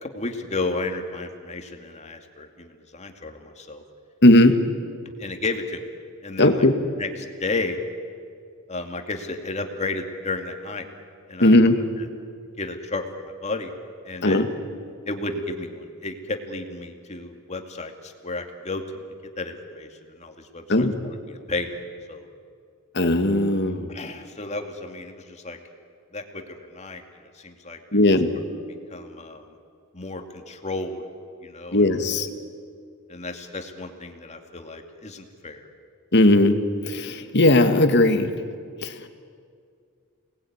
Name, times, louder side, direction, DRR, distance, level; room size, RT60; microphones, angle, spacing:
voice 1, 0.0-3.8 5.2-5.8 6.2-6.7 7.0-7.8 8.7-10.9 11.3-11.7 12.0-12.1 12.6-13.7 14.0-14.5 15.0-18.8 19.4-21.8 22.1-22.3 23.9-25.6 26.1-27.0 27.3-28.0 28.9-29.5 29.9-31.0 31.4-31.8 33.1-35.7, left 3 dB, 35° left, 4 dB, 2.4 m, -33 dB
voice 2, 4.2-4.6 6.4-6.7 11.4-11.7 14.2-14.5 20.7-20.9 23.0-23.9 27.9-28.3 31.7-32.3 36.1-36.6 36.9-38.3 38.8-38.9, left 1 dB, 55° left, 7 dB, 1.9 m, -17 dB
29.0 x 20.0 x 9.5 m, 2.2 s
head